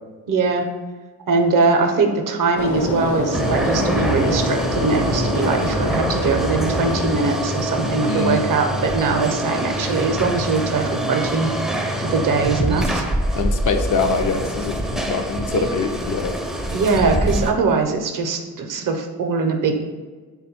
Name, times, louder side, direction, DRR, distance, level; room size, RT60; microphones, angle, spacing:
voice 1, 0.3-0.7 1.3-13.1 15.5-15.6 16.7-19.7, right 4 dB, 50° right, 4 dB, 0.6 m, -21 dB
sound 1, 2.6-9.8, left 1 dB, 65° left, 0.8 m, -27 dB
sound 2, 3.3-17.5, equal, ahead, 0.5 m, -24 dB
voice 2, 8.1-8.4 13.3-16.3, left 5 dB, 50° left, 6 dB, 0.5 m, -24 dB
3.4 x 2.3 x 4.2 m, 1.4 s
supercardioid pair, 60°, 40 cm